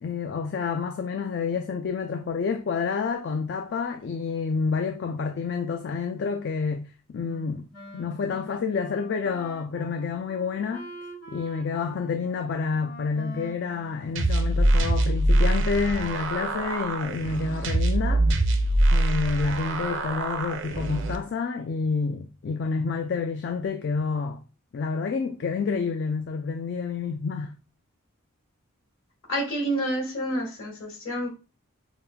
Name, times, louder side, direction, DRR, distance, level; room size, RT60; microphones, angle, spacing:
voice 1, 0.0-7.7 7.9-10.9 11.3-18.2 18.9-24.4 24.7-27.5, left 5 dB, 50° left, 0.3 m, -29 dB
Wind instrument woodwind instrument, 7.2-14.7, equal, 85° left, 1.8 m, -45 dB
sound 1, 14.2-21.2, right 1 dB, 55° right, 0.5 m, -24 dB
voice 2, 29.3-31.3, right 1 dB, 65° left, 1.6 m, -28 dB
5.1 x 2.4 x 2.2 m
head